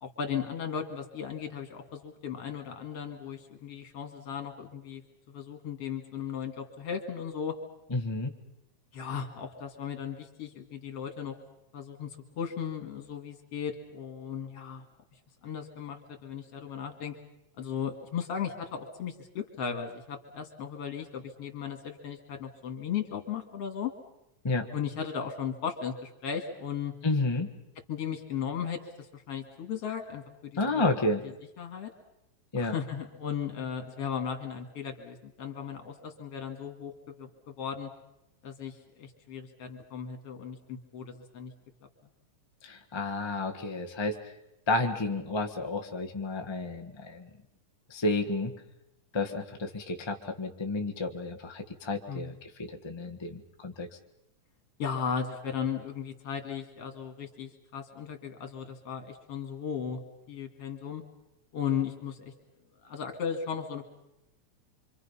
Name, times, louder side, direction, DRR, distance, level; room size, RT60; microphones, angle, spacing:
voice 1, 0.0-5.0 5.3-7.6 8.9-11.4 11.7-14.9 15.4-17.2 17.6-23.9 24.7-26.9 27.9-30.8 31.6-31.9 32.6-37.9 38.4-41.5 52.1-52.4 54.8-60.0 60.3-61.0 61.5-62.3 62.8-63.8, left 7 dB, 55° left, 6 dB, 3.0 m, -36 dB
voice 2, 7.9-8.3 24.4-24.7 27.0-27.5 30.5-31.2 32.5-32.7 42.6-44.3 44.7-47.3 47.9-48.5 49.1-53.9, left 2 dB, 30° left, 3 dB, 0.5 m, -31 dB
26.0 x 25.5 x 5.7 m, 0.86 s
omnidirectional pair, 3.3 m